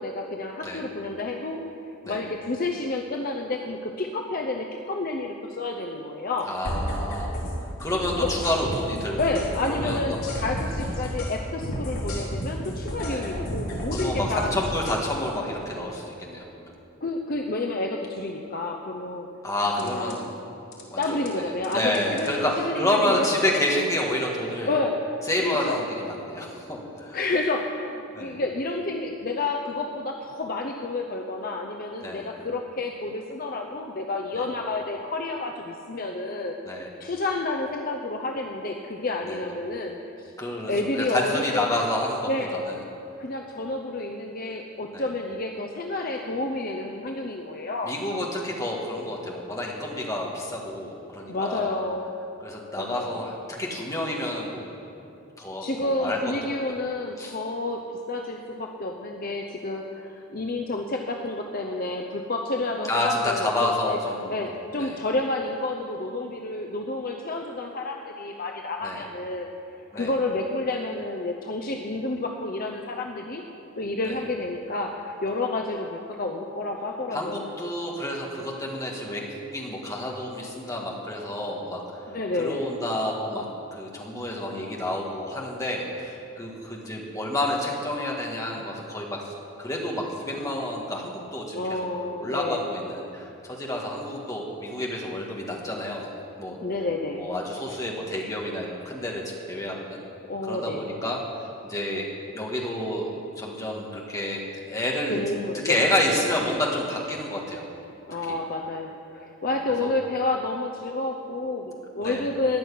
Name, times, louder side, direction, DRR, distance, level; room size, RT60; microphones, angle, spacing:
voice 1, 0.0-1.6 2.0-6.5 8.1-8.3 9.2-14.5 17.0-19.3 19.8-20.2 21.0-23.6 24.7-25.0 25.4-25.8 27.1-36.6 37.0-40.3 40.7-41.9 42.3-42.6 43.2-47.9 51.3-52.1 52.8-53.3 55.6-64.0 64.3-69.5 69.9-73.4 73.8-77.4 82.1-82.7 91.5-92.7 96.6-97.3 100.3-100.8 105.1-105.8 108.1-112.6, left 2 dB, 40° left, 2 dB, 0.7 m, -30 dB
voice 2, 6.4-7.4 7.8-9.2 9.7-10.2 13.1-13.2 13.9-16.7 19.4-20.3 20.9-21.2 21.7-24.7 25.3-27.2 28.1-28.4 32.0-32.3 34.3-34.4 36.7-36.9 39.2-39.4 40.4-42.8 44.9-45.0 47.8-51.8 52.4-54.7 55.4-56.2 56.7-56.8 57.2-57.4 62.9-64.3 64.8-65.0 68.8-69.0 69.9-70.1 74.0-74.2 77.1-83.4 83.7-89.2 89.6-91.6 92.2-96.1 96.4-96.6 97.2-100.0 100.4-101.2 101.6-103.1 103.3-104.4 104.7-105.2 105.6-107.7 108.3-108.4 109.8-109.9 112.0-112.3, left 1 dB, 15° left, -2 dB, 1.7 m, -29 dB
sound 1, 6.6-7.5 7.8-11.4 11.6-15.0 19.8-20.2 20.7-21.3 21.6-22.3, equal, 85° left, 3.1 m, -32 dB
14.0 x 6.3 x 10.0 m, 2.7 s
head